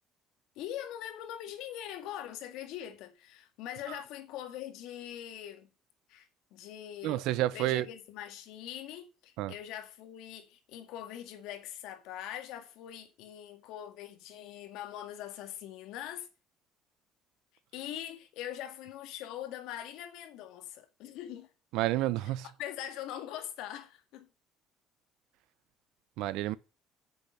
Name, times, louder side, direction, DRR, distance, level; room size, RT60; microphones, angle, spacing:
voice 1, 0.6-5.7 6.1-7.3 7.5-16.3 17.7-21.5 22.6-24.3, left 11 dB, 80° left, 1.9 m, -42 dB
voice 2, 7.0-7.9 9.4-9.5 21.7-22.5 26.2-26.6, right 15 dB, 80° right, 0.7 m, -29 dB
8.6 x 6.9 x 5.6 m
cardioid pair, 135°, 0 cm